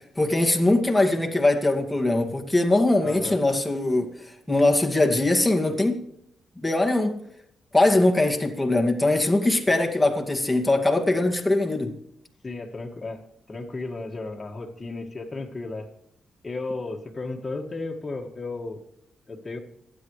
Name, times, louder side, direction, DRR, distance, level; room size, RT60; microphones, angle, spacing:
voice 1, 0.2-6.0 6.6-7.2 7.7-11.9, left 2 dB, 10° left, 2.2 m, -21 dB
voice 2, 3.0-3.4 12.4-13.2 13.5-15.9 16.4-18.8 19.3-19.6, left 3 dB, 30° left, 2.0 m, -34 dB
26.5 x 9.4 x 3.3 m
cardioid pair, 60°, 0 cm